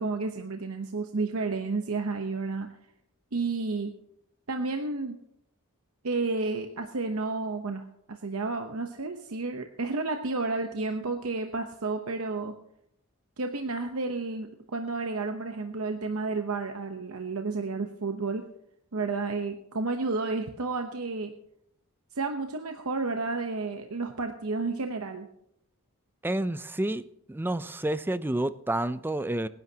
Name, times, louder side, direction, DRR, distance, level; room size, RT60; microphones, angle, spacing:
voice 1, 0.0-2.7 3.3-3.9 4.5-5.2 6.0-12.5 13.4-18.5 18.9-21.3 22.1-25.3, right 3 dB, 70° right, 0.9 m, -31 dB
voice 2, 26.2-27.0 27.3-29.5, right 1 dB, 10° right, 0.4 m, -29 dB
24.5 x 10.5 x 2.8 m
head